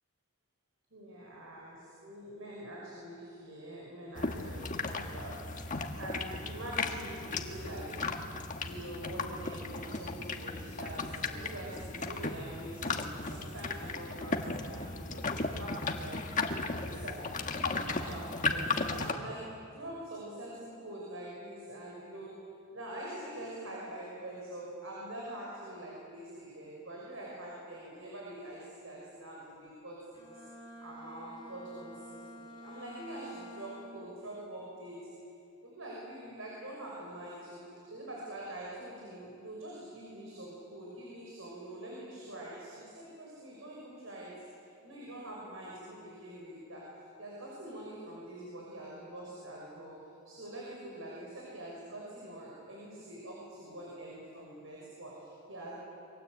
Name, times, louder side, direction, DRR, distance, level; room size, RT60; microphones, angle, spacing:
voice 1, 0.9-7.9 8.6-22.3 22.7-30.4 30.8-35.0 35.6-37.6 37.9-44.3 44.8-46.9 47.2-49.9 50.2-55.7, right 1 dB, 75° right, -4 dB, 6.3 m, -45 dB
sound 1, 4.1-19.1, left 3 dB, 40° left, 1.6 m, -36 dB
Bowed string instrument, 30.1-34.3, equal, 20° left, 3.5 m, -49 dB
28.0 x 23.0 x 8.2 m, 2.6 s
head